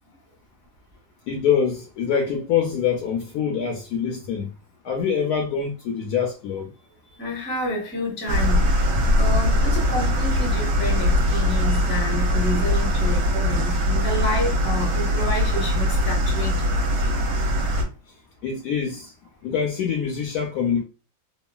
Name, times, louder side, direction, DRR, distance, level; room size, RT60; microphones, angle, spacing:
voice 1, 1.3-4.5 4.8-6.7 18.4-19.1 19.4-20.8, left 7 dB, 70° left, 0.9 m, -25 dB
voice 2, 7.1-8.7 9.1-16.8, equal, 10° left, 0.6 m, -29 dB
sound 1, 8.3-17.8, left 1 dB, 65° right, 1.1 m, -21 dB
3.0 x 2.3 x 2.2 m
omnidirectional pair, 2.0 m